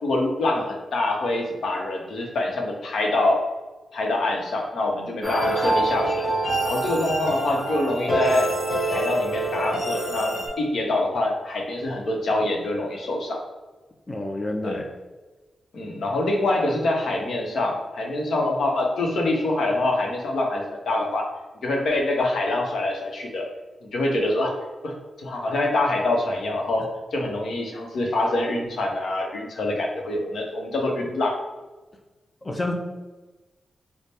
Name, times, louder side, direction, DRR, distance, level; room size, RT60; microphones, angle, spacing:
voice 1, 0.0-3.4 3.9-6.3 6.6-8.5 8.9-13.4 14.6-14.8 15.7-21.2 21.6-23.4 23.8-24.5 24.8-24.9 25.2-26.9 27.1-31.4, left 2 dB, 75° left, 1 dB, 0.7 m, -25 dB
sound 1, 5.2-10.5, right 1 dB, 60° left, 1.2 m, -25 dB
voice 2, 14.1-14.9 32.4-32.7, left 1 dB, 25° left, 3 dB, 0.4 m, -29 dB
3.3 x 2.1 x 4.3 m, 1.2 s
wide cardioid pair, 95°, 0 cm